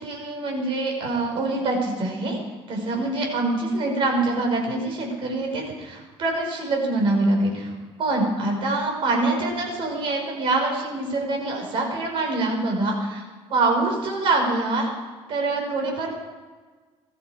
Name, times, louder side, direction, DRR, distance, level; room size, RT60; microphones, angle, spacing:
voice 1, 0.0-2.4 2.7-13.2 13.5-14.9 15.3-16.1, right 2 dB, 55° right, 1 dB, 5.4 m, -25 dB
20.0 x 14.0 x 5.0 m, 1.4 s
cardioid pair, 145°, 11 cm